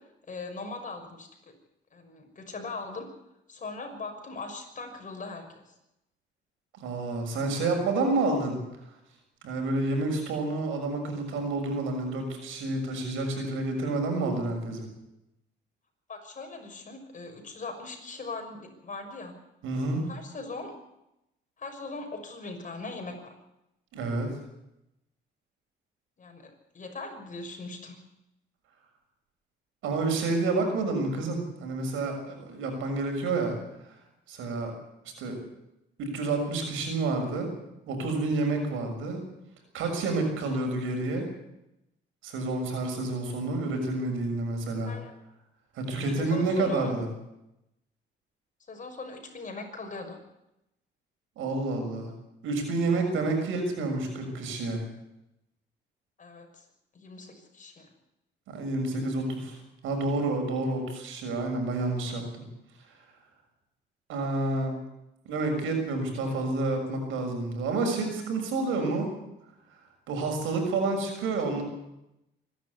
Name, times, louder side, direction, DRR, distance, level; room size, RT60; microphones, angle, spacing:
voice 1, 0.3-1.3 1.9-3.0 3.5-5.6 16.1-19.3 20.1-20.7 21.6-23.4 26.2-28.0 44.8-45.1 46.2-46.9 48.7-50.2 56.2-56.6 56.9-57.9 62.1-62.3, left 3 dB, 40° left, 5 dB, 6.1 m, -40 dB
voice 2, 6.8-8.6 9.4-14.9 19.6-20.0 23.9-24.3 29.8-33.5 34.3-34.7 35.2-35.4 36.0-37.5 37.9-39.2 39.7-41.3 42.2-44.9 45.7-47.1 51.4-52.1 52.4-54.8 58.5-59.6 59.8-62.2 64.1-64.7 65.2-69.1 70.1-71.6, right 3 dB, 90° right, 4 dB, 6.7 m, -29 dB
25.0 x 11.5 x 9.8 m, 0.87 s
cardioid pair, 90°, 20 cm